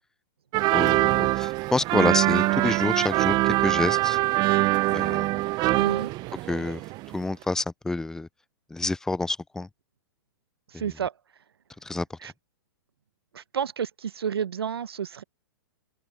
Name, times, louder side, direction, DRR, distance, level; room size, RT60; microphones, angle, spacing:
sound 1, 0.5-7.1 7.4-7.5, right 19 dB, 35° right, 0.8 m, -24 dB
voice 1, 0.7-4.2 4.9-5.4 6.5-6.8 7.1-8.3 8.7-9.7 11.8-12.1, left 2 dB, 5° left, 0.3 m, -28 dB
voice 2, 5.8-6.1 10.7-11.1 12.2-12.3 13.3-15.2, right 8 dB, 85° right, 0.9 m, -30 dB
open air
hypercardioid pair, 125°, 12 cm